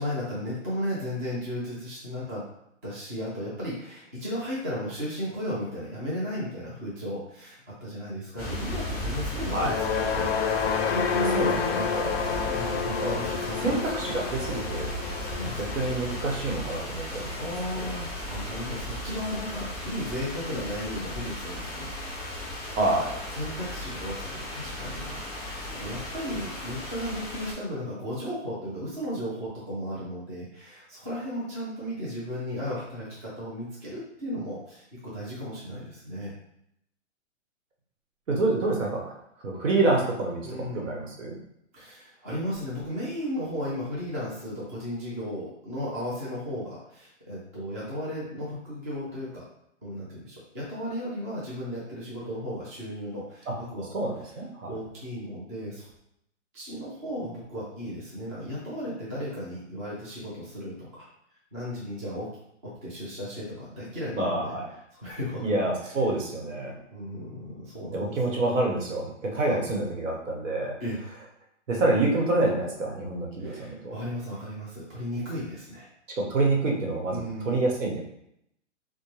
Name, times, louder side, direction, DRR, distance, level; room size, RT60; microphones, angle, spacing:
voice 1, 0.0-2.5 2.8-10.3 10.9-11.7 12.4-14.1 15.2-15.9 16.9-21.9 23.3-36.3 40.4-40.9 41.7-49.4 49.8-53.9 54.7-55.9 56.5-61.1 61.5-62.3 62.6-64.5 64.9-65.9 66.9-68.2 69.5-69.6 70.8-71.0 73.4-75.9 77.1-77.6, equal, 15° right, -8 dB, 0.4 m, -35 dB
sound 1, 8.4-27.5, left 1 dB, 10° left, 0.9 m, -36 dB
sound 2, 9.5-17.8, left 6 dB, 50° left, 0.4 m, -30 dB
voice 2, 11.3-12.1 12.9-13.2 13.6-15.4 15.7-17.3 22.8-23.1 38.3-39.1 39.4-41.4 53.5-53.6 53.9-54.7 64.2-64.7 65.4-66.7 67.9-70.7 71.7-73.9 76.1-78.0, right 2 dB, 75° right, 0 dB, 1.2 m, -27 dB
4.2 x 2.1 x 3.2 m, 0.77 s
hypercardioid pair, 145°, 38 cm